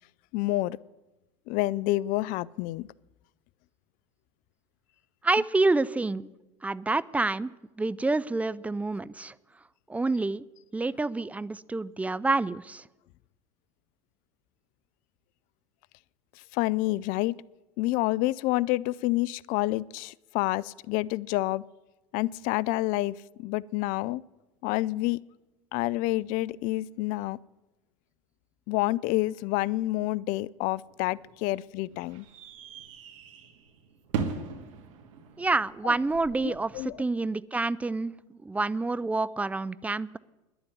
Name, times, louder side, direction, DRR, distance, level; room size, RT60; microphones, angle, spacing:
voice 1, 0.3-0.8 1.5-2.9 16.5-17.4 17.8-21.6 22.1-24.2 24.6-25.2 25.7-27.4 28.7-32.2 35.8-35.9 36.4-36.9, left 18 dB, 55° left, 22 dB, 0.4 m, -28 dB
voice 2, 5.2-6.3 6.6-7.5 7.8-9.3 9.9-10.4 10.7-12.8 35.4-40.2, right 3 dB, 10° right, 18 dB, 0.4 m, -28 dB
sound 1, 30.8-36.8, right 6 dB, 70° right, 1.6 m, -39 dB
11.0 x 7.1 x 9.4 m, 1.0 s
hypercardioid pair, 90°, 17 cm